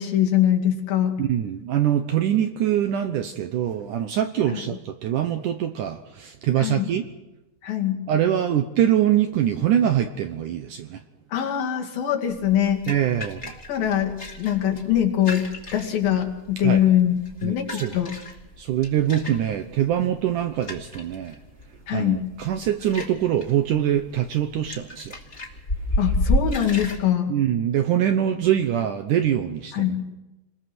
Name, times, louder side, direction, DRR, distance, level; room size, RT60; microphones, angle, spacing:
voice 1, 0.0-1.2 4.5-4.6 6.6-6.9 7.6-8.0 11.3-12.8 13.7-15.4 15.7-17.1 17.4-18.1 21.9-22.2 26.0-27.3 29.7-30.0, left 10 dB, 65° left, 3 dB, 3.8 m, -22 dB
voice 2, 1.2-7.1 8.1-11.0 12.9-13.5 16.6-16.8 17.4-17.9 18.6-21.4 21.9-25.2 27.3-29.9, right 10 dB, 70° right, 8 dB, 2.1 m, -23 dB
sound 1, 12.3-27.0, left 1 dB, 20° left, 2.4 m, -32 dB
29.5 x 21.0 x 6.2 m, 1.0 s
omnidirectional pair, 4.6 m